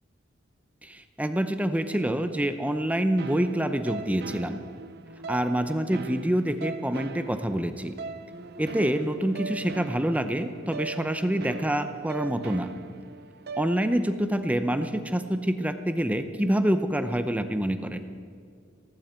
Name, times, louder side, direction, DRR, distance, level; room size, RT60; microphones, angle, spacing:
voice 1, 0.8-4.6 5.3-7.9 8.6-12.7 13.6-18.0, right 1 dB, 5° right, 9 dB, 0.7 m, -26 dB
sound 1, 3.2-14.1, right 4 dB, 55° right, 0.6 m, -40 dB
17.5 x 15.5 x 4.5 m, 2.3 s
head